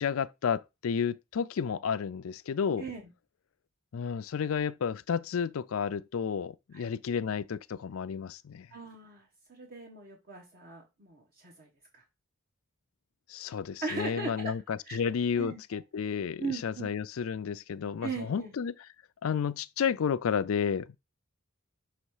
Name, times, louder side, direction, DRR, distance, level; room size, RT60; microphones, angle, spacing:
voice 1, 0.0-2.8 3.9-8.7 13.3-18.7 19.2-20.9, left 7 dB, 75° left, 0.4 m, -31 dB
voice 2, 2.8-3.1 6.7-6.8 8.7-12.0 13.8-14.5 14.8-15.0 15.4-15.6 16.4-16.9 18.0-18.5, right 3 dB, 45° right, 1.2 m, -39 dB
6.5 x 3.1 x 4.8 m
head